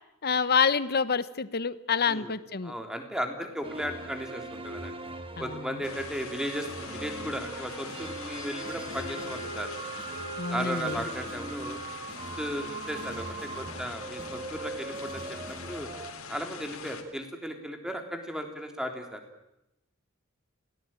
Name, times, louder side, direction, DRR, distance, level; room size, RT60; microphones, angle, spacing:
voice 1, 0.2-2.7 5.4-5.7 10.4-11.1, left 6 dB, 50° left, 15 dB, 1.0 m, -27 dB
voice 2, 2.6-5.0 5.4-9.7 10.5-11.8 12.4-15.9 16.3-19.2, equal, 5° right, 5 dB, 3.4 m, -36 dB
sound 1, 3.6-16.1, right 3 dB, 25° right, 1.8 m, -40 dB
sound 2, 5.8-17.0, left 5 dB, 80° left, 3.6 m, -43 dB
sound 3, 6.8-13.9, equal, 60° right, 7.0 m, -44 dB
29.5 x 18.5 x 9.0 m, 0.88 s
head